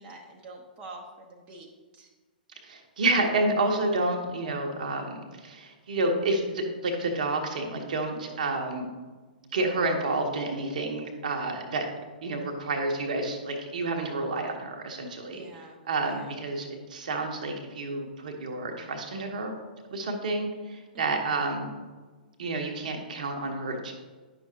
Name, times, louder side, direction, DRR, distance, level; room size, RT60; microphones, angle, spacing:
voice 1, 0.0-2.1 15.3-16.4 20.9-21.3, right 2 dB, 25° right, 0 dB, 0.8 m, -47 dB
voice 2, 2.6-8.9 9.5-11.9 12.2-15.5 15.9-19.6 19.9-21.7 22.4-23.9, right 2 dB, 55° right, 3 dB, 1.0 m, -29 dB
9.8 x 6.0 x 2.8 m, 1.4 s
figure-of-eight pair, 110°, 5 cm